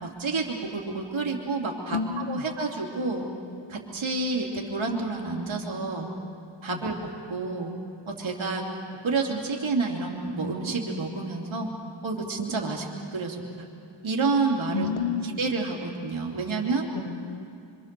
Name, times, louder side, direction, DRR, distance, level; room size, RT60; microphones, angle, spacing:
voice 1, 0.0-3.3 3.7-6.1 6.6-7.7 8.1-8.6 9.0-11.7 12.0-12.9 13.1-13.4 14.0-14.9 15.2-16.9, right 3 dB, 85° right, -1 dB, 3.1 m, -29 dB
voice 2, 1.9-2.4 6.7-6.8 14.7-15.4 16.9-17.4, left 5 dB, 90° left, 10 dB, 1.2 m, -30 dB
27.0 x 26.0 x 6.9 m, 2.6 s
wide cardioid pair, 125°, 45 cm